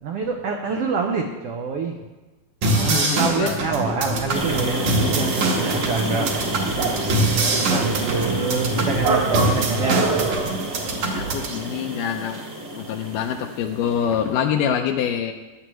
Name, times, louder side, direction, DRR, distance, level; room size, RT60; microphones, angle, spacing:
voice 1, 0.0-1.9 2.6-6.5 7.4-10.1, right 4 dB, 85° right, 2 dB, 1.3 m, -26 dB
voice 2, 2.6-3.6 4.1-4.2 9.2-9.9 10.9-12.4 12.7-15.3, left 8 dB, 80° left, 4 dB, 2.1 m, -26 dB
sound 1, 2.6-11.6, right 2 dB, 65° right, 2.8 m, -24 dB
sound 2, 3.8-10.3, equal, 20° right, 1.0 m, -33 dB
sound 3, 4.3-14.0, right 3 dB, 40° right, 1.6 m, -27 dB
15.5 x 11.0 x 3.1 m, 1.2 s
omnidirectional pair, 3.9 m